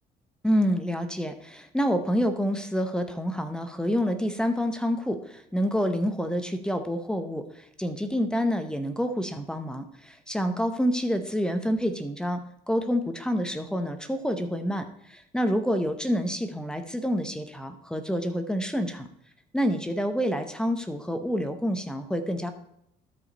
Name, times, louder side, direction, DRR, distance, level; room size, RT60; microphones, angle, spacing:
voice 1, 0.4-12.4 12.7-19.1 19.5-22.5, equal, 5° left, 8 dB, 0.9 m, -28 dB
13.0 x 5.1 x 4.1 m, 0.73 s
cardioid pair, 110°, 17 cm